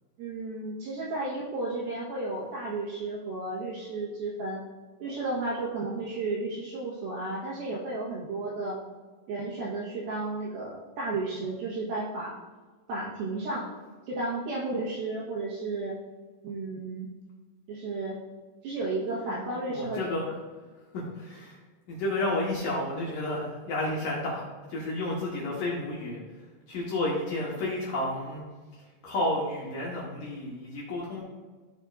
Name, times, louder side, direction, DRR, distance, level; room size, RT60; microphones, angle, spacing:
voice 1, 0.2-4.6 5.0-8.8 9.3-12.4 12.9-13.7 14.1-16.0 16.4-17.1 17.7-18.2 18.6-20.0, right 2 dB, 70° right, -5 dB, 2.6 m, -33 dB
voice 2, 19.7-20.2 20.9-21.6 21.9-26.2 26.7-28.4 29.0-31.2, left 1 dB, 65° left, -5 dB, 2.4 m, -31 dB
15.5 x 5.3 x 2.5 m, 1.4 s
omnidirectional pair, 5.3 m